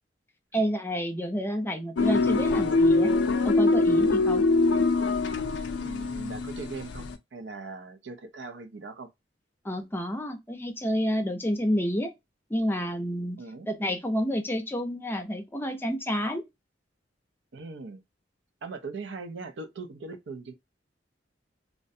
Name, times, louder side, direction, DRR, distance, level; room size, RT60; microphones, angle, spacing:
voice 1, 0.5-3.1 3.4-4.4 9.6-12.1 12.5-13.4 13.7-16.4, equal, 10° left, 0.6 m, -29 dB
sound 1, 2.0-7.1, left 3 dB, 70° left, 0.4 m, -24 dB
voice 2, 5.8-9.1 13.4-13.7 17.5-18.0 18.6-20.5, right 3 dB, 75° right, 0.5 m, -40 dB
2.5 x 2.1 x 2.6 m
head